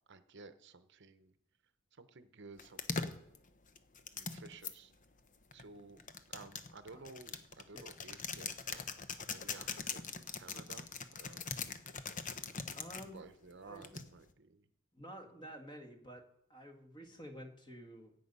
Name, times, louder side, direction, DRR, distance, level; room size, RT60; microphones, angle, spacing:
voice 1, 0.1-1.3 2.0-3.1 4.1-4.9 5.5-6.0 6.3-8.8 9.2-10.9 11.2-11.5 13.1-14.7 15.4-15.5, right 3 dB, 60° right, 11 dB, 0.9 m, -54 dB
sound 1, 2.6-4.7 5.5-13.1 13.8-14.3, left 5 dB, 40° left, 0.8 m, -41 dB
voice 2, 12.7-13.2 13.6-13.8 14.9-18.1, equal, 25° left, 3 dB, 1.8 m, -50 dB
16.5 x 8.4 x 5.5 m, 0.74 s
head